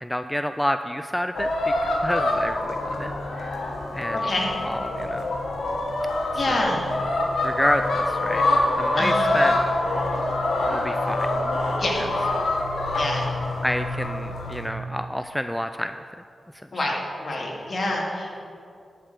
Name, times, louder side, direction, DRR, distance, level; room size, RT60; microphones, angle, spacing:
voice 1, 0.0-3.6 3.9-4.3 4.7-5.4 6.5-6.8 7.4-8.5 8.8-9.6 10.6-11.3 12.0-12.1 13.6-16.0, equal, 5° left, 9 dB, 0.3 m, -29 dB
sound 1, 1.3-14.7, left 2 dB, 90° left, 1.1 m, -25 dB
voice 2, 4.1-4.5 6.3-6.9 9.0-9.4 11.8-12.0 13.0-13.3 16.7-16.9 17.2-18.4, left 1 dB, 50° left, -2 dB, 2.3 m, -27 dB
11.5 x 4.5 x 6.7 m, 2.4 s
cardioid pair, 55°, 0 cm